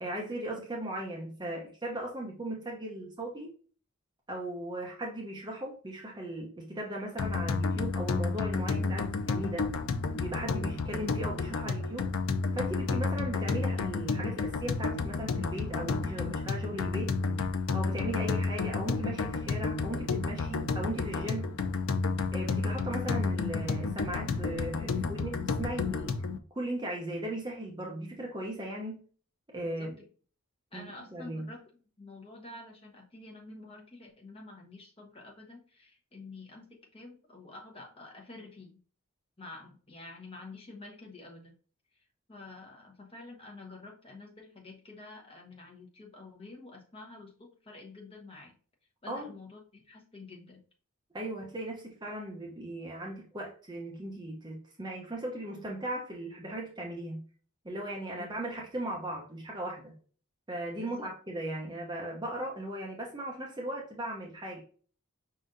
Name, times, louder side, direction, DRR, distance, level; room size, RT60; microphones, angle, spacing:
voice 1, 0.0-3.5 4.3-9.7 10.1-12.1 12.5-17.2 17.7-21.5 22.3-26.2 26.5-29.0 29.5-30.0 30.7-31.5 49.1-49.3 51.1-57.2 57.6-59.9 60.5-64.6, right 1 dB, 20° right, -1 dB, 0.7 m, -37 dB
sound 1, 7.2-26.4, left 4 dB, 70° left, 0.5 m, -31 dB
voice 2, 25.7-26.1 29.8-29.9 30.7-31.7 32.0-38.7 39.4-41.5 42.3-48.5 49.0-50.6 58.2-58.3 60.8-61.1, left 2 dB, 25° left, 0 dB, 1.0 m, -48 dB
5.2 x 3.8 x 2.6 m, 0.41 s
head